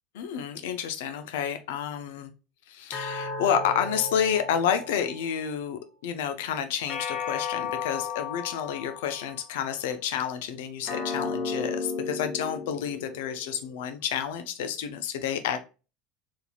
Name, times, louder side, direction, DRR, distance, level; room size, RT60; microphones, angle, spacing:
voice 1, 0.1-2.3 2.7-15.6, left 8 dB, 80° left, 8 dB, 0.3 m, -30 dB
sound 1, 2.9-5.5 6.9-9.4 10.9-13.5, left 4 dB, 45° left, 0.9 m, -34 dB
2.9 x 2.5 x 2.2 m, 0.32 s
hypercardioid pair, 95°, 0 cm